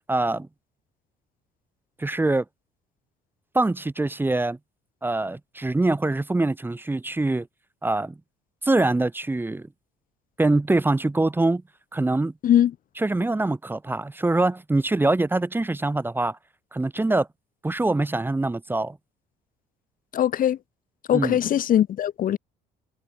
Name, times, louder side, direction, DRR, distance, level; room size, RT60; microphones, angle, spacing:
voice 1, 0.1-0.5 2.0-2.4 3.5-4.6 5.0-7.5 7.8-8.1 8.6-9.7 10.4-11.6 11.9-12.3 13.0-16.4 16.7-17.3 17.6-19.0 21.1-21.4, right 2 dB, 10° right, 1.5 m, -24 dB
voice 2, 20.1-20.6 21.1-22.4, left 10 dB, 55° left, 1.8 m, -21 dB
cardioid pair, 110°, 17 cm